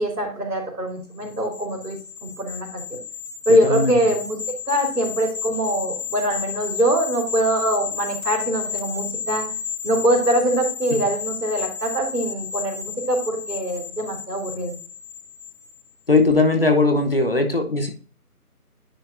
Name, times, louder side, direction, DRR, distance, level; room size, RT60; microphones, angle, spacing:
voice 1, 0.0-2.0 2.4-3.0 3.5-4.4 4.7-9.4 9.8-14.7, right 1 dB, 80° right, 2 dB, 3.3 m, -23 dB
sound 1, 1.2-15.8 16.2-16.3, left 6 dB, 60° left, 1.3 m, -32 dB
voice 2, 3.6-4.0 10.9-11.0 16.1-17.9, left 3 dB, 40° left, 6 dB, 1.0 m, -19 dB
10.0 x 5.4 x 2.6 m, 0.37 s
figure-of-eight pair, 170°, 46 cm